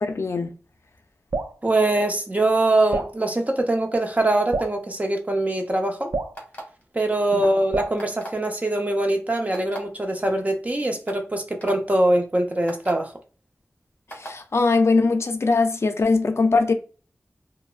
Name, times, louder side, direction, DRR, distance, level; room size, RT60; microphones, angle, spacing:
voice 1, 0.0-0.5 7.3-7.4 14.1-16.7, left 3 dB, 60° left, 0.4 m, -21 dB
Drip, 1.3-1.6 2.9-3.2 4.5-4.8 6.1-6.4 7.7-8.0, right 3 dB, 80° right, 0.3 m, -28 dB
voice 2, 1.6-6.1 6.9-13.1, right 1 dB, 30° right, 0.6 m, -23 dB
sound 1, 6.3-6.8 8.0-8.4 9.5-9.8 10.5-10.6 11.1-11.2 11.6-11.7 12.7-12.9 14.1-14.4, right 1 dB, 25° left, 1.3 m, -37 dB
3.1 x 2.0 x 2.4 m
wide cardioid pair, 50°, 5 cm